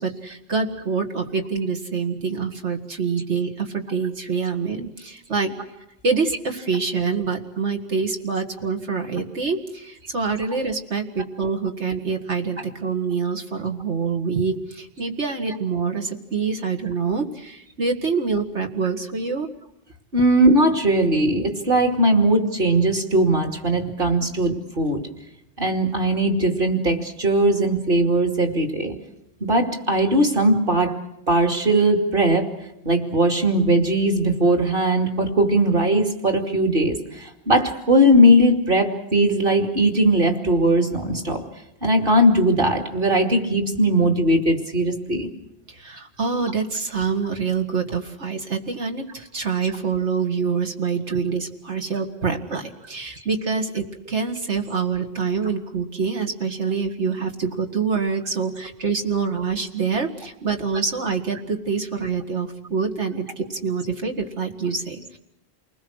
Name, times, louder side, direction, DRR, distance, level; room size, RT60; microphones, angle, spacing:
voice 1, 0.0-5.5 6.0-19.5 45.7-65.2, right 5 dB, 90° right, 4 dB, 2.3 m, -26 dB
voice 2, 20.1-25.0 25.6-28.9 29.4-30.9 31.3-32.5 32.8-41.4 41.8-45.3, right 1 dB, 55° right, 4 dB, 2.8 m, -19 dB
29.0 x 20.5 x 6.4 m, 0.84 s
omnidirectional pair, 1.1 m